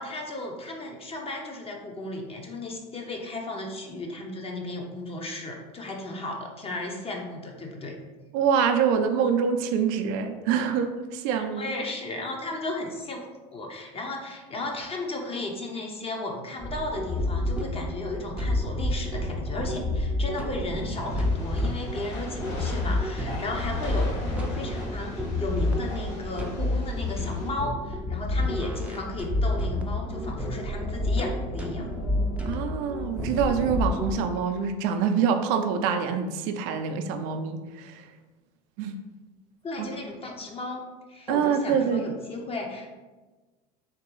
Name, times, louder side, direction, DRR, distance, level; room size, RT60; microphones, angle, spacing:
voice 1, 0.0-8.0 11.3-13.3 13.5-31.9 39.6-40.8 41.1-42.9, left 2 dB, 30° left, 1 dB, 0.7 m, -35 dB
voice 2, 8.3-11.6 32.5-38.0 38.8-39.0 39.8-39.9 41.3-42.0, right 7 dB, 70° right, 6 dB, 0.4 m, -25 dB
sound 1, 16.6-34.2, left 1 dB, 5° right, 0.5 m, -29 dB
Train, 20.9-27.5, left 1 dB, 70° left, 1.0 m, -40 dB
3.6 x 2.9 x 3.0 m, 1.2 s
hypercardioid pair, 85°, 21 cm